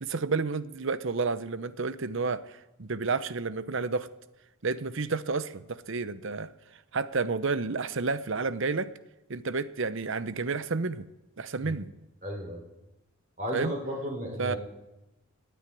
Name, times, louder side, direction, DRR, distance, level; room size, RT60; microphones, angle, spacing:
voice 1, 0.0-4.1 4.6-6.5 6.9-8.9 9.3-11.1 11.4-11.9 13.5-13.7 14.4-14.5, right 4 dB, 55° right, 14 dB, 0.7 m, -30 dB
voice 2, 12.2-12.6 13.4-14.6, equal, 35° right, 1 dB, 4.7 m, -34 dB
15.5 x 9.3 x 9.9 m, 0.98 s
head